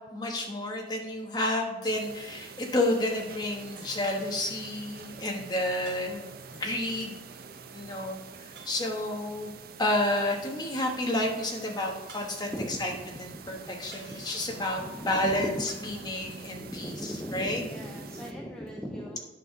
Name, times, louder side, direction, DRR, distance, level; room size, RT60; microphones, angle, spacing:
voice 1, 0.1-7.2 7.7-9.5 9.8-17.6, left 1 dB, 20° left, 0 dB, 1.2 m, -30 dB
sound 1, 1.8-2.2 2.9-3.0 3.8-4.1 5.8-6.5 8.5-9.0 10.3-10.8 12.1-12.8 13.9-14.8 15.7-16.5, right 3 dB, 65° right, 2.6 m, -52 dB
sound 2, 1.9-18.3, right 5 dB, 50° right, 0.5 m, -47 dB
voice 2, 15.9-19.2, equal, 5° left, -2 dB, 0.6 m, -38 dB
9.2 x 5.5 x 3.6 m, 1.2 s
head